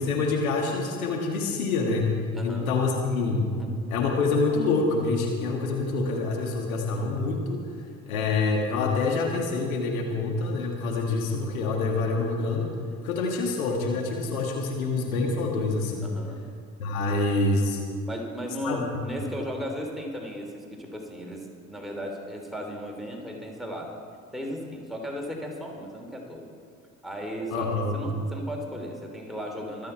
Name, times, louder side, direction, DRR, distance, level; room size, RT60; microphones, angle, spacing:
voice 1, 0.0-2.1 2.4-3.5 3.9-7.8 8.1-12.7 13.0-16.1 16.8-17.8 18.6-18.9 27.5-28.0, left 3 dB, 75° left, 1 dB, 2.0 m, -26 dB
voice 2, 2.3-2.7 3.6-3.7 16.0-16.4 17.1-17.2 18.1-23.9 24.3-26.4 27.0-29.9, equal, ahead, 0 dB, 3.1 m, -36 dB
24.5 x 8.7 x 4.5 m, 2.3 s
figure-of-eight pair, 55°, 43 cm